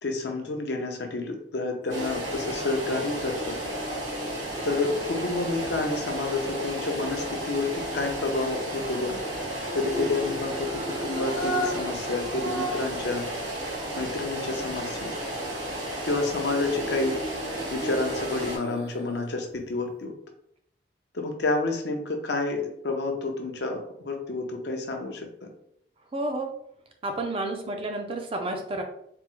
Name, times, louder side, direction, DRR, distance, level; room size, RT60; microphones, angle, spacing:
voice 1, 0.0-3.6 4.6-9.2 9.7-13.3 14.0-15.1 16.0-17.2 17.7-20.1 21.1-25.5, left 3 dB, 65° left, 3 dB, 0.6 m, -29 dB
sound 1, 1.8-6.1 9.6-13.0 13.4-13.5 16.3-19.2 19.6-19.7, right 1 dB, 55° right, 0.8 m, -37 dB
sound 2, 1.9-18.6, right 1 dB, 85° right, 1.3 m, -33 dB
voice 2, 26.1-26.5 27.0-28.8, right 2 dB, 30° right, 4 dB, 0.4 m, -30 dB
3.4 x 2.0 x 3.0 m, 0.71 s
head